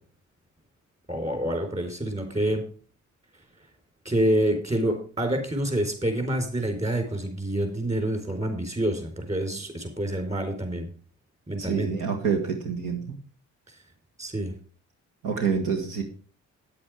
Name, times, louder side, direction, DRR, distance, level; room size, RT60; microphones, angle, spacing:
voice 1, 1.1-2.6 4.0-10.9 11.5-11.9 14.2-14.5, right 1 dB, 25° right, 5 dB, 4.4 m, -27 dB
voice 2, 11.6-13.2 15.2-16.0, right 6 dB, 80° right, 2 dB, 1.9 m, -27 dB
9.6 x 8.6 x 5.0 m, 0.39 s
cardioid pair, 90°, 30 cm